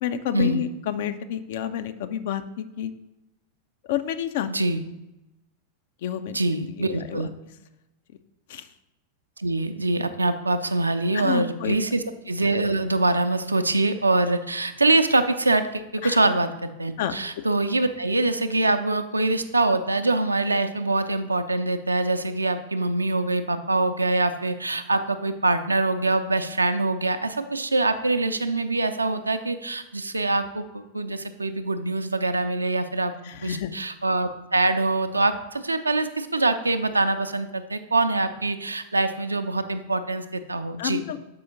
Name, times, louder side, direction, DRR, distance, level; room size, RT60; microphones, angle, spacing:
voice 1, 0.0-2.9 3.8-4.5 6.0-6.4 6.8-7.2 8.5-8.7 11.1-11.8 16.0-16.2 17.0-17.1 33.2-33.7 40.8-41.2, left 10 dB, 55° left, 10 dB, 0.4 m, -29 dB
voice 2, 4.5-4.8 6.3-7.3 9.4-33.1 33.4-41.2, right 2 dB, 80° right, 9 dB, 0.4 m, -24 dB
6.9 x 4.8 x 4.0 m, 0.96 s
figure-of-eight pair, 90°, 0 cm